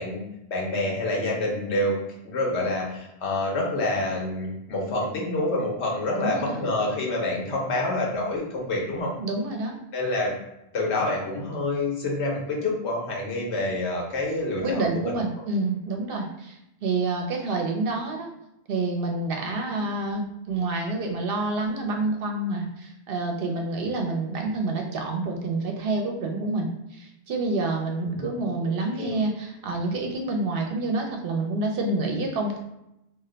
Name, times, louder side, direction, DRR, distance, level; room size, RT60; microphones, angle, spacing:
voice 1, 0.0-2.0 2.2-9.1 9.9-10.3 10.7-15.1 28.1-28.3 29.0-29.2, left 2 dB, 90° left, -1 dB, 1.1 m, -27 dB
voice 2, 6.2-6.6 9.2-9.8 14.6-18.3 18.7-32.6, right 2 dB, 65° right, 2 dB, 0.7 m, -28 dB
2.4 x 2.1 x 3.8 m, 0.85 s
omnidirectional pair, 1.1 m